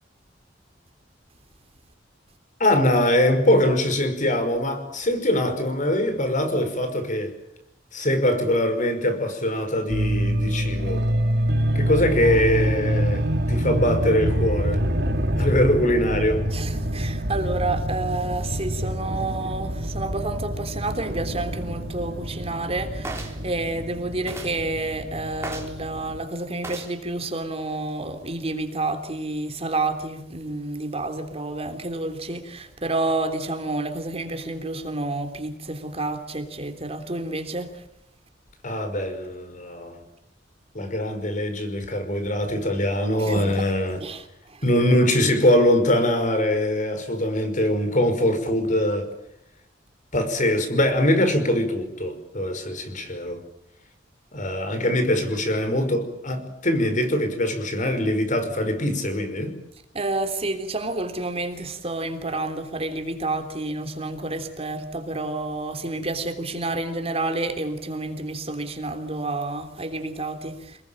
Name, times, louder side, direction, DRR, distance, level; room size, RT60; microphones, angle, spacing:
voice 1, 2.6-7.4 7.9-11.1 11.7-14.9 15.4-16.5 38.6-40.0 40.7-44.0 44.6-49.1 50.1-53.4 54.3-59.6, left 1 dB, 45° left, 5.5 m, -22 dB
sound 1, 9.9-26.2, equal, 65° right, 3.1 m, -26 dB
voice 2, 16.5-37.8 43.2-43.6 44.0-44.6 59.9-70.8, right 2 dB, 35° right, 3.3 m, -29 dB
sound 2, 23.0-23.4 24.3-24.6 25.4-25.8 26.6-27.0 27.7-27.9, right 2 dB, 15° right, 4.2 m, -35 dB
28.5 x 21.0 x 8.9 m
head